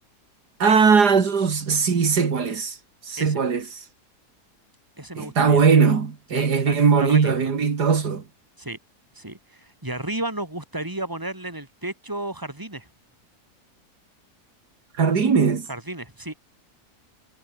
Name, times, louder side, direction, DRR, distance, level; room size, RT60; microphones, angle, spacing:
voice 1, 0.6-2.8 3.0-3.8 5.2-8.2 15.0-15.7, right 5 dB, 80° right, 2.7 m, -19 dB
voice 2, 5.0-5.6 6.3-7.4 8.6-8.8 9.1-12.9 15.7-16.3, right 1 dB, 10° right, 3.8 m, -33 dB
omnidirectional pair, 1.7 m